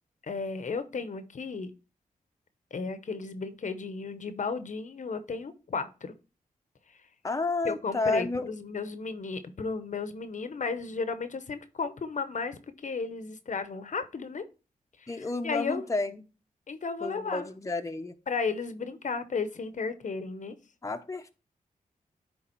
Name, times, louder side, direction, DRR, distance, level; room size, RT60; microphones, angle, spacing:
voice 1, 0.2-1.7 2.7-6.1 7.6-14.4 15.0-15.8 16.7-17.5 18.3-20.5, left 4 dB, 60° left, 11 dB, 0.8 m, -34 dB
voice 2, 7.2-8.5 15.1-16.2 17.0-18.1 20.8-21.3, left 3 dB, 20° left, 6 dB, 0.7 m, -31 dB
9.8 x 3.5 x 4.4 m, 0.32 s
cardioid pair, 65°, 15 cm